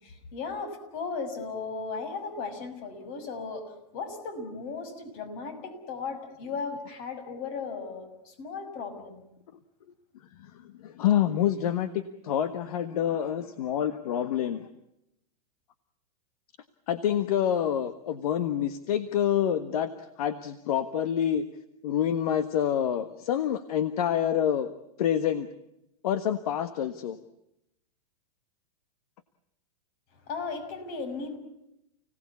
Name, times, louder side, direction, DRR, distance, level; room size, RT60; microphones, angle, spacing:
voice 1, 0.0-9.2 30.3-31.4, left 4 dB, 45° left, 9 dB, 6.2 m, -36 dB
voice 2, 10.4-14.7 16.9-21.4 21.8-24.7 25.0-25.5 26.0-27.2, left 10 dB, 65° left, 11 dB, 1.5 m, -27 dB
30.0 x 18.5 x 8.5 m, 0.84 s
hypercardioid pair, 135°, 20 cm